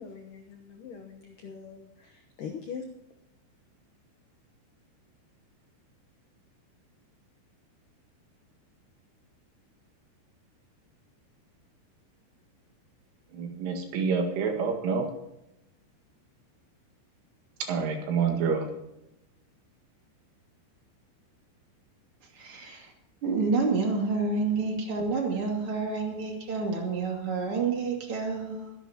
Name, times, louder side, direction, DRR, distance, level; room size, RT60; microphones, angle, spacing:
voice 1, 0.0-2.9, left 6 dB, 80° left, 3 dB, 1.9 m, -42 dB
voice 2, 13.3-15.1 17.7-18.8, right 5 dB, 85° right, 2 dB, 4.4 m, -28 dB
voice 3, 22.3-22.9 23.2-28.7, right 4 dB, 35° right, 1 dB, 2.6 m, -29 dB
24.0 x 11.0 x 2.9 m, 0.90 s
omnidirectional pair, 5.5 m